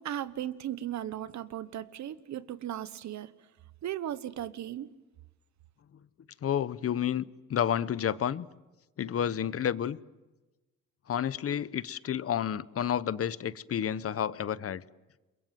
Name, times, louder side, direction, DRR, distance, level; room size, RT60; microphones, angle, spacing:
voice 1, 0.0-3.3 3.8-4.9, right 11 dB, 65° right, 1.2 m, -36 dB
voice 2, 6.4-8.5 9.0-10.0 11.1-14.8, left 9 dB, 50° left, 0.9 m, -30 dB
28.5 x 22.5 x 7.7 m
cardioid pair, 90°, 30 cm